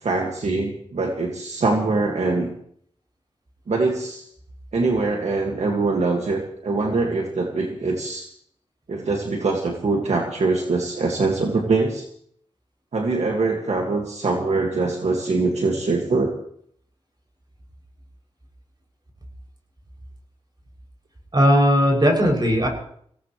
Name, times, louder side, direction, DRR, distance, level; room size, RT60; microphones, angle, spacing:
voice 1, 0.0-2.5 3.7-4.2 4.7-8.3 8.9-12.1 12.9-16.3, right 3 dB, 80° right, 1 dB, 2.0 m, -23 dB
voice 2, 21.3-22.7, equal, 40° right, -1 dB, 7.0 m, -17 dB
24.5 x 17.5 x 3.2 m, 0.64 s
cardioid pair, 60°, 11 cm